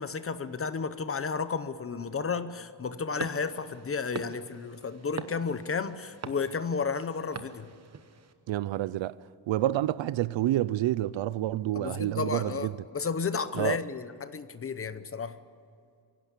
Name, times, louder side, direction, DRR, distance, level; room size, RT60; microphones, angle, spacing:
voice 1, 0.0-7.7 11.7-15.4, left 5 dB, 30° left, 0.8 m, -32 dB
sound 1, 3.2-8.3, right 6 dB, 30° right, 1.0 m, -43 dB
voice 2, 8.5-9.2 9.5-12.7 13.6-13.8, right 14 dB, 65° right, 0.6 m, -28 dB
23.5 x 16.5 x 8.4 m
wide cardioid pair, 165°, 49 cm